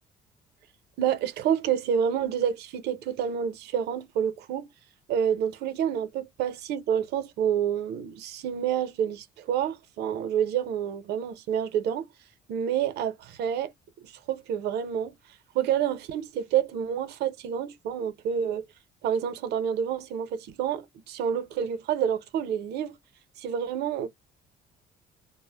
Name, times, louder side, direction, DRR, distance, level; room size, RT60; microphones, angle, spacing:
voice 1, 1.0-4.7 5.1-12.1 12.5-13.7 14.0-15.1 15.5-18.6 19.0-23.0 23.4-24.1, right 9 dB, 75° right, 0.6 m, -28 dB
2.1 x 2.0 x 3.2 m
cardioid pair, 110°, 17 cm